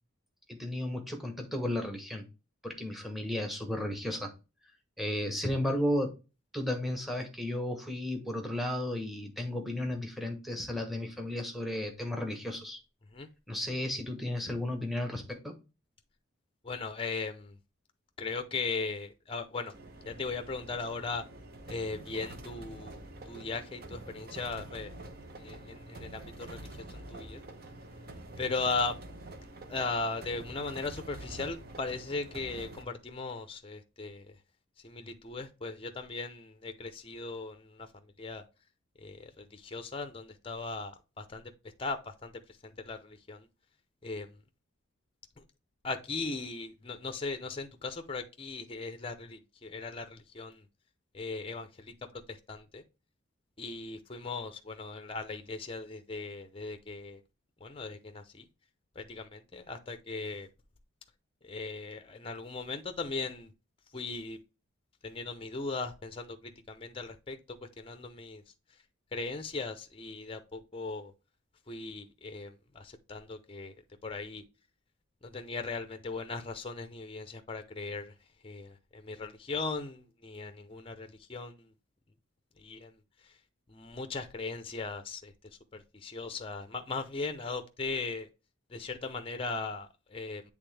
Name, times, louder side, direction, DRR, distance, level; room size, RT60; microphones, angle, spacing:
voice 1, 0.5-2.2 2.6-4.3 5.0-6.1 6.5-12.8 13.5-15.6, left 1 dB, ahead, 1.1 m, -34 dB
voice 2, 16.6-17.5 18.2-19.7 20.1-21.2 21.7-24.9 25.4-27.4 28.4-28.9 29.7-34.3 34.8-37.9 38.2-38.4 39.0-41.5 41.8-42.3 42.6-43.5 44.0-44.3 45.8-50.6 51.1-51.9 52.3-52.8 53.6-57.2 57.6-58.4 59.0-60.5 61.4-63.5 63.9-64.4 65.0-67.4 67.8-68.4 69.1-71.1 71.7-73.7 74.0-74.4 75.2-78.1 78.4-81.7 82.6-82.9 83.7-85.3 85.7-88.3 88.7-90.4, left 3 dB, 25° left, 0.6 m, -38 dB
sound 1, 19.7-32.8, right 2 dB, 45° right, 0.9 m, -47 dB
8.1 x 3.5 x 3.3 m
head